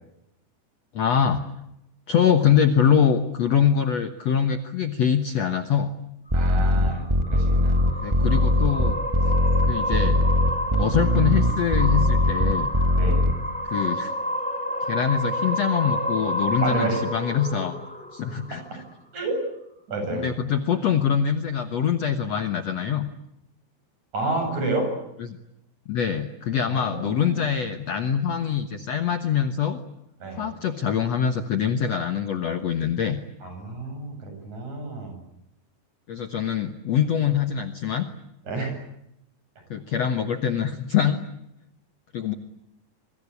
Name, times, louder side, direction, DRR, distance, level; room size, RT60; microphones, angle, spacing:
voice 1, 0.9-1.5 2.1-5.9 8.0-9.0 9.7-10.2 10.8-12.7 13.6-14.1 14.9-17.7 18.1-18.8 20.1-23.1 25.2-25.4 25.9-29.8 30.3-33.2 36.1-38.1 39.7-41.2 42.1-42.3, left 8 dB, 60° left, 8 dB, 1.9 m, -24 dB
sound 1, 6.3-18.8, equal, ahead, 3.3 m, -30 dB
sound 2, 6.3-13.3, left 1 dB, 20° right, 0.7 m, -20 dB
voice 2, 6.3-7.8 12.9-13.3 16.6-17.0 18.5-18.8 19.1-19.4 19.9-20.3 24.1-24.9 26.7-27.4 30.2-30.5 33.4-35.2 38.5-38.7, right 2 dB, 50° right, 5 dB, 9.1 m, -30 dB
27.0 x 24.0 x 8.5 m, 0.81 s
omnidirectional pair, 4.4 m